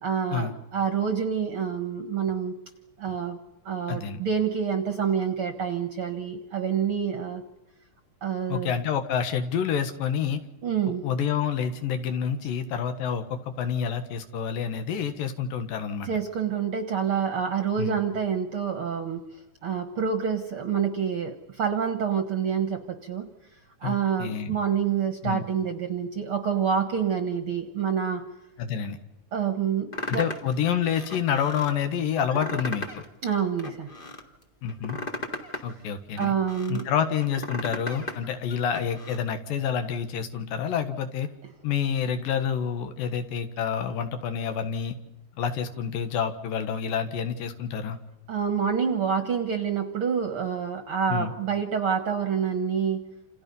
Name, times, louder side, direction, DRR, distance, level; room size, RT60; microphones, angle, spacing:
voice 1, 0.0-2.5 3.0-3.4 3.6-7.4 8.2-8.7 10.6-11.0 16.0-19.2 19.6-23.3 23.8-28.2 29.3-30.3 33.2-33.9 36.2-36.8 48.3-53.0, right 7 dB, 55° right, 7 dB, 1.7 m, -27 dB
voice 2, 3.9-4.2 8.5-10.4 11.0-16.1 17.8-18.0 23.8-24.6 25.2-25.4 28.6-29.0 30.1-33.0 34.6-35.0 35.6-36.3 36.7-41.3 41.6-44.9 45.4-48.0 51.1-51.3, left 7 dB, 75° left, 8 dB, 3.2 m, -28 dB
sound 1, 29.9-30.5 30.9-31.7 32.2-33.0 33.4-34.2 34.7-36.8 37.2-38.2 38.5-39.2, left 2 dB, 30° left, 0.9 m, -36 dB
28.0 x 28.0 x 5.5 m, 0.94 s
omnidirectional pair, 4.0 m